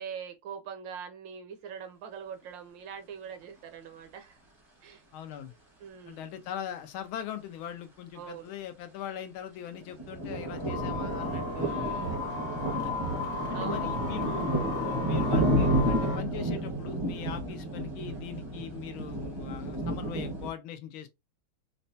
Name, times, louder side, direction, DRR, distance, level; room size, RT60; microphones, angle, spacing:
voice 1, 0.0-4.4 4.8-5.0 5.8-6.3 8.1-8.5 11.6-12.2 13.5-13.9 17.9-18.3, right 7 dB, 70° right, 1.3 m, -43 dB
voice 2, 5.1-5.5 6.1-12.2 12.7-13.0 13.5-21.1, left 10 dB, 80° left, 1.4 m, -41 dB
sound 1, 9.7-20.5, right 1 dB, 20° right, 0.7 m, -31 dB
sound 2, 10.3-16.2, left 4 dB, 60° left, 1.5 m, -36 dB
5.1 x 2.1 x 2.7 m
omnidirectional pair, 2.3 m